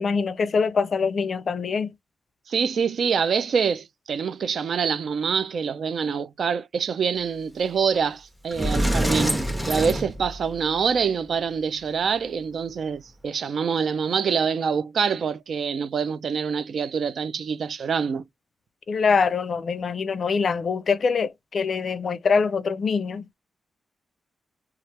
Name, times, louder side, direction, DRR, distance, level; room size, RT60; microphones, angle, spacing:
voice 1, 0.0-1.9 18.9-23.3, left 5 dB, 55° left, 0.4 m, -24 dB
voice 2, 2.5-18.2, right 6 dB, 65° right, 0.4 m, -25 dB
Sliding door, 8.0-8.1 8.5-10.8, equal, 5° left, 0.6 m, -25 dB
3.1 x 2.4 x 2.8 m
cardioid pair, 95°, 0 cm